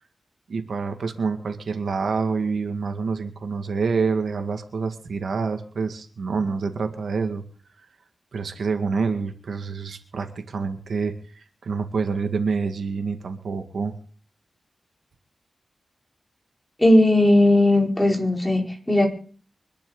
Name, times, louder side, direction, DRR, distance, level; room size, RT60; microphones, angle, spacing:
voice 1, 0.5-7.4 8.3-13.9, right 4 dB, 85° right, 6 dB, 2.1 m, -27 dB
voice 2, 16.8-19.1, left 1 dB, 5° left, 0 dB, 4.5 m, -17 dB
25.0 x 11.5 x 4.0 m, 0.42 s
wide cardioid pair, 120°, 0 cm